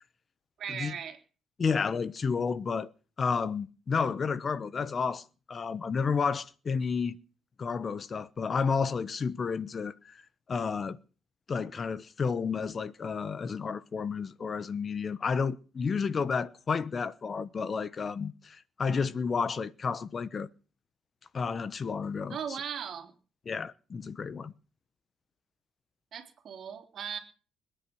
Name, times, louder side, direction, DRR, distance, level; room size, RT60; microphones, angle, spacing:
voice 1, 0.6-1.2 22.3-23.1 26.1-27.2, right 8 dB, 50° right, 3.5 m, -38 dB
voice 2, 1.6-2.9 3.2-7.2 7.6-10.2 10.5-11.0 11.5-20.5 21.3-22.4 23.5-24.5, left 5 dB, 30° left, 0.9 m, -31 dB
21.5 x 10.0 x 6.2 m
cardioid pair, 135°, 0 cm